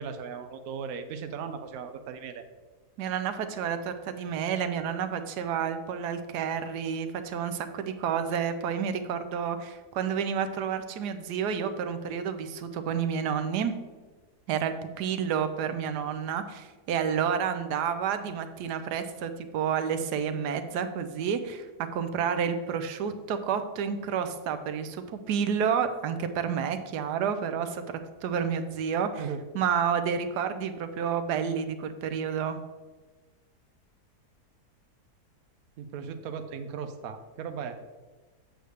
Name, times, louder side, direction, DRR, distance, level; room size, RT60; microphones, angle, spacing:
voice 1, 0.0-2.4 29.2-29.4 35.8-37.8, right 6 dB, 70° right, 8 dB, 1.0 m, -37 dB
voice 2, 3.0-13.7 14.5-21.7 21.9-27.8 28.2-29.3 29.5-32.6, right 7 dB, 85° right, 9 dB, 1.2 m, -30 dB
7.8 x 6.6 x 3.3 m, 1.3 s
omnidirectional pair, 1.7 m